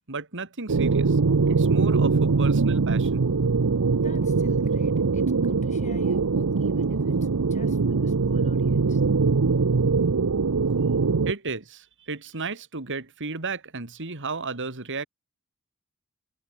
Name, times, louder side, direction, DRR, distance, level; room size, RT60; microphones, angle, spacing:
voice 1, 0.1-1.2 1.5-3.2 11.3-15.1, right 4 dB, 60° right, 2.4 m, -33 dB
sound 1, 0.7-11.3, right 4 dB, 85° right, 0.7 m, -22 dB
voice 2, 3.9-9.0, left 2 dB, 35° left, 4.2 m, -47 dB
head